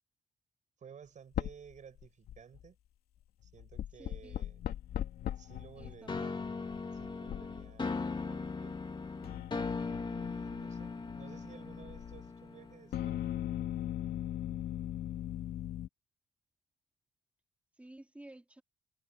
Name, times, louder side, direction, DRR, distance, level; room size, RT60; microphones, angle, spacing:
voice 1, 0.8-2.8 3.4-4.7 5.4-6.5 6.9-8.8 10.0-13.3, right 7 dB, 50° right, 8.0 m, -55 dB
sound 1, 1.3-1.7 2.0-2.6 3.5-12.3 12.9-15.9, left 11 dB, 85° left, 2.5 m, -40 dB
voice 2, 4.0-4.4 5.8-6.4 17.7-18.6, right 1 dB, 10° right, 2.7 m, -54 dB
sound 2, 6.1-12.9, left 4 dB, 30° left, 3.0 m, -39 dB
cardioid pair, 95°, 15 cm